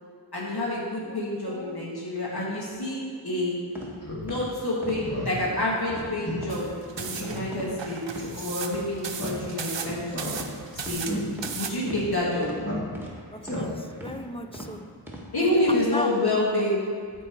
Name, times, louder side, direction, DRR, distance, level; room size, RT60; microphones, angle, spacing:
voice 1, 0.3-3.6 4.2-6.6 7.0-8.0 8.3-10.4 10.9-11.0 11.5-12.5 15.3-16.8, left 1 dB, 60° left, -6 dB, 2.1 m, -28 dB
voice 2, 1.1-1.9 13.3-14.9 15.4-16.2, equal, 15° left, 6 dB, 0.6 m, -37 dB
sound 1, 3.7-3.9 4.3-4.4 4.8-5.0 5.4-5.5 5.9-6.1 6.4-6.6 7.0-7.1 7.5-7.7 8.1-8.3 8.7-8.8 9.2-9.4 9.8-10.0 10.3-10.5 10.8-11.0 11.4-11.6 11.9-12.1 12.4-12.6 12.9-13.1 13.5-13.7 14.0-14.2 14.5-14.7 15.1-15.3 15.6-15.8, right 1 dB, 5° right, 1.8 m, -39 dB
Speech synthesizer, 4.0-4.2 4.6-4.7 5.0-5.3 5.7-5.8 6.2-6.4 6.7-6.8 7.1-7.4 8.2-8.4 9.1-9.7 10.1-10.7 11.0-11.2 11.8-12.0 12.6-13.1 13.4-14.0, left 1 dB, 35° left, 2.2 m, -34 dB
sound 2, 6.5-11.7, right 6 dB, 85° right, 0.7 m, -36 dB
13.5 x 4.5 x 4.6 m, 2.2 s
wide cardioid pair, 50°, 43 cm